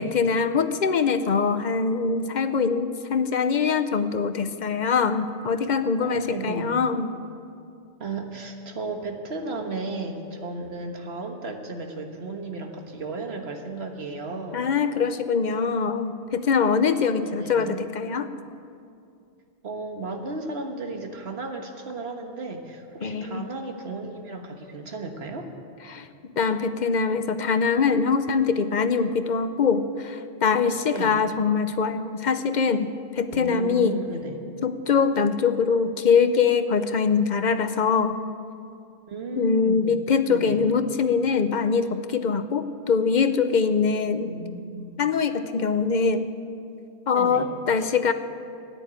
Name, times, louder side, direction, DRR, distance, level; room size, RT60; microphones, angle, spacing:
voice 1, 0.0-7.1 14.5-18.3 23.0-23.5 25.9-26.1 26.3-34.0 34.6-38.2 39.4-44.3 45.0-46.3 47.1-48.1, left 5 dB, 50° left, 10 dB, 0.7 m, -23 dB
voice 2, 6.0-6.7 8.0-14.7 17.2-17.9 19.6-25.5 30.9-31.1 33.3-34.4 39.1-39.9 40.3-40.7 44.2-45.0 47.1-47.5, right 3 dB, 75° right, 4 dB, 1.6 m, -34 dB
13.5 x 10.0 x 8.8 m, 2.5 s
omnidirectional pair, 1.1 m